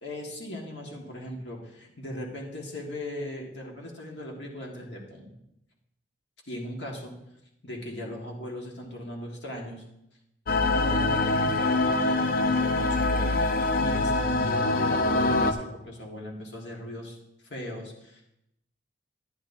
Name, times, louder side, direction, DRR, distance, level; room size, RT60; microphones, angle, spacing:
voice 1, 0.0-5.3 6.5-7.1 7.6-9.8 10.7-13.4 13.8-17.2 17.5-18.2, equal, 85° left, -1 dB, 1.7 m, -38 dB
sound 1, 10.5-15.5, left 2 dB, 55° left, 0.6 m, -24 dB
12.0 x 10.0 x 2.7 m, 0.84 s
head